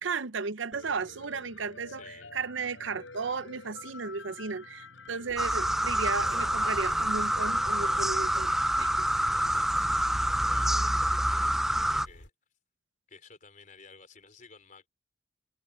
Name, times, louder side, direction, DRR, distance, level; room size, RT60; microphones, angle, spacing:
voice 1, 0.0-8.5 8.8-9.1, right 4 dB, 80° right, 0.7 m, -34 dB
Piano, 0.7-9.4, left 3 dB, 80° left, 6.8 m, -48 dB
voice 2, 1.9-2.3 9.3-12.3 13.1-14.9, left 4 dB, 40° left, 4.0 m, -54 dB
sound 1, 5.3-12.3, left 1 dB, 60° left, 3.1 m, -49 dB
sound 2, 5.4-12.1, right 1 dB, ahead, 0.3 m, -27 dB
head